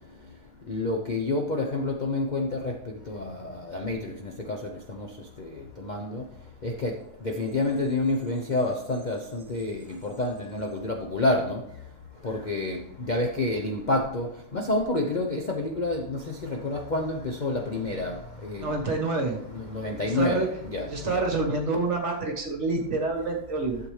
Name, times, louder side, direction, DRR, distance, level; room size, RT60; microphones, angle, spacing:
voice 1, 0.7-5.1 5.4-6.2 6.6-7.0 7.2-11.6 12.2-18.7 19.4-21.5, left 2 dB, 40° left, 2 dB, 0.7 m, -29 dB
voice 2, 18.6-19.4 20.0-20.5 20.9-23.8, right 3 dB, 45° right, 2 dB, 1.6 m, -27 dB
12.0 x 7.0 x 3.2 m, 0.73 s
omnidirectional pair, 1.8 m